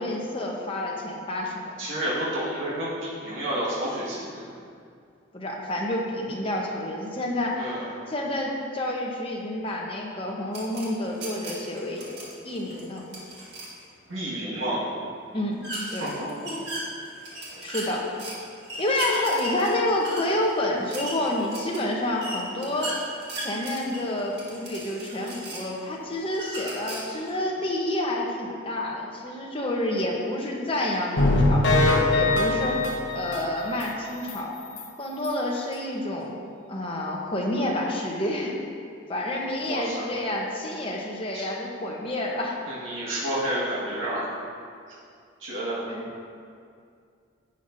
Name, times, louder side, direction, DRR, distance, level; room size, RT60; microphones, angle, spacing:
voice 1, 0.0-1.7 5.3-7.7 8.1-12.1 12.4-13.0 15.3-16.2 17.6-18.1 18.8-23.0 23.4-31.7 32.1-32.9 33.1-34.5 35.0-36.4 36.7-38.5 39.1-42.6 45.9-46.1, left 1 dB, 25° left, -2 dB, 1.0 m, -29 dB
voice 2, 1.8-4.5 7.6-7.9 14.1-14.8 16.0-16.6 39.7-40.1 41.3-41.5 42.7-44.3 45.4-45.9, right 1 dB, 70° right, -8 dB, 1.8 m, -30 dB
sound 1, 10.5-13.8 15.6-18.4 18.6-25.8 26.3-27.3, right 1 dB, 55° right, 2.0 m, -37 dB
sound 2, 31.2-33.9 34.3-34.4 34.8-34.9 35.2-35.3, left 2 dB, 65° left, 0.9 m, -22 dB
11.0 x 8.1 x 2.7 m, 2.3 s
head